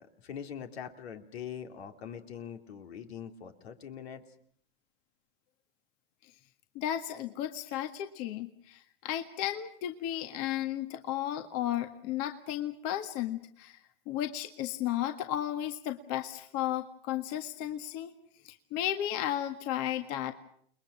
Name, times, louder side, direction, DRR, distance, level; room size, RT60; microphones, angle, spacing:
voice 1, 0.0-4.2, left 8 dB, 75° left, 5 dB, 2.9 m, -43 dB
voice 2, 6.8-13.8 14.1-18.1 18.4-20.3, left 12 dB, 50° left, 7 dB, 1.8 m, -34 dB
30.0 x 21.5 x 6.3 m, 0.64 s
hypercardioid pair, 100°, 31 cm